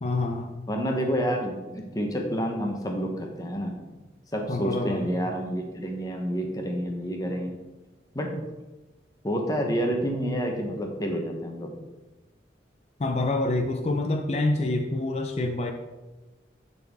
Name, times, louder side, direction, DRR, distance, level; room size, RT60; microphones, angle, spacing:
voice 1, 0.0-0.6 4.5-5.1 13.0-15.7, left 2 dB, 35° left, 4 dB, 0.5 m, -27 dB
voice 2, 0.7-3.7 4.3-7.6 8.1-8.4 9.2-11.7, equal, 20° left, 2 dB, 1.0 m, -29 dB
10.0 x 4.1 x 3.6 m, 1.1 s
head